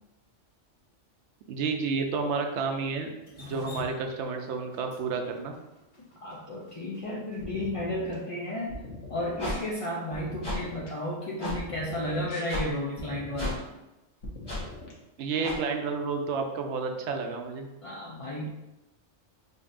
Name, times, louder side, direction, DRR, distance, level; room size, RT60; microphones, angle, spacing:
voice 1, 1.5-5.5 15.2-17.7, right 4 dB, 70° right, 4 dB, 0.8 m, -31 dB
Drip, 3.3-7.4, left 3 dB, 45° left, 1.4 m, -46 dB
voice 2, 6.2-8.8 9.1-13.6 17.8-18.6, left 1 dB, 60° left, -5 dB, 0.3 m, -33 dB
sound 1, 7.4-8.1 8.7-9.6 10.1-10.9 11.5-12.4 13.0-13.6 14.2-14.9, left 2 dB, 75° left, 1.2 m, -42 dB
sound 2, 9.4-9.5 10.4-10.6 11.4-11.5 12.5-12.6 13.4-13.5 14.5-14.6 15.4-15.6, left 1 dB, 20° left, 1.4 m, -31 dB
5.2 x 2.7 x 2.5 m, 0.97 s
omnidirectional pair, 1.3 m